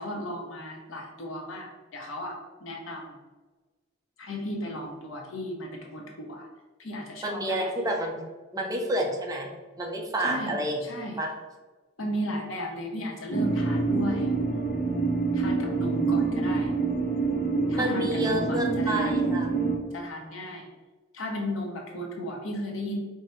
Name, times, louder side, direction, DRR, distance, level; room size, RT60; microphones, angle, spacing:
voice 1, 0.0-3.2 4.2-6.5 6.8-7.7 10.2-10.5 10.8-11.2 12.0-14.3 15.3-16.8 17.7-19.2 19.9-20.7 21.1-23.0, left 1 dB, 85° left, 0 dB, 1.0 m, -35 dB
voice 2, 7.2-8.2 8.5-9.5 9.8-10.8 11.2-11.3 17.8-19.5, right 1 dB, 20° right, 0 dB, 0.7 m, -29 dB
sound 1, 13.3-19.8, right 4 dB, 45° left, 0.8 m, -26 dB
4.6 x 2.2 x 4.4 m, 1.3 s
head